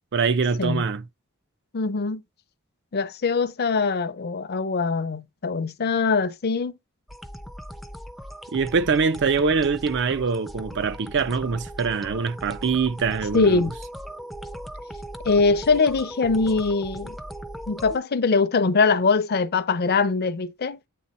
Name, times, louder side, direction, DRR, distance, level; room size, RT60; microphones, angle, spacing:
voice 1, 0.1-1.0 8.5-13.6, right 5 dB, 55° right, 0.5 m, -24 dB
voice 2, 1.7-2.2 2.9-6.7 13.3-13.7 15.2-17.2 17.7-20.8, left 4 dB, 50° left, 0.5 m, -22 dB
sound 1, 7.1-18.0, equal, ahead, 0.4 m, -38 dB
8.5 x 3.4 x 4.1 m
head